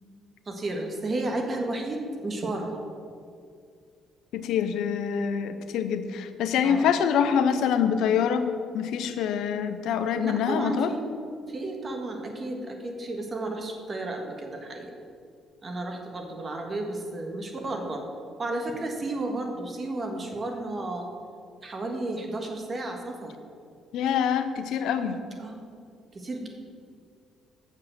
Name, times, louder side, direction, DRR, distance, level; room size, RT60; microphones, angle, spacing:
voice 1, 0.4-2.8 6.6-6.9 10.2-11.0 11.5-14.9 15.6-18.0 18.4-21.1 21.6-23.3 25.4-25.6 26.1-26.5, right 2 dB, 35° right, 3 dB, 1.6 m, -32 dB
voice 2, 4.3-8.5 8.7-10.9 23.9-25.2, left 7 dB, 80° left, 9 dB, 0.6 m, -25 dB
7.2 x 6.5 x 6.6 m, 2.3 s
cardioid pair, 80°, 0 cm